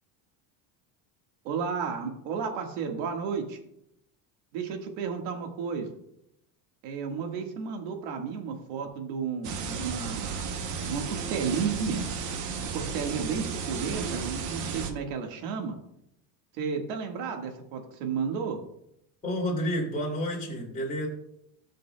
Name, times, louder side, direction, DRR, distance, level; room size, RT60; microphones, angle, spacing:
voice 1, 1.5-3.6 4.5-5.9 6.8-10.5 10.9-12.1 12.7-15.8 16.6-18.6, right 6 dB, 80° right, 4 dB, 1.8 m, -32 dB
sound 1, 9.4-14.9, right 5 dB, 40° right, 0.9 m, -34 dB
voice 2, 19.2-21.1, equal, 15° left, -3 dB, 2.7 m, -30 dB
18.0 x 6.5 x 2.2 m, 0.79 s
cardioid pair, 165°, 46 cm